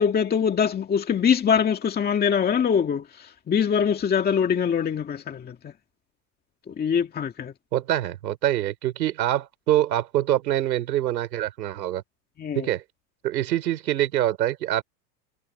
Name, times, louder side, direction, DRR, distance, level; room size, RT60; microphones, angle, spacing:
voice 1, 0.0-5.6 6.7-7.5 12.4-12.7, left 7 dB, 20° left, 2.0 m, -23 dB
voice 2, 7.7-12.0 12.5-12.8 13.2-14.8, right 13 dB, 90° right, 5.0 m, -25 dB
supercardioid pair, 135°, 49 cm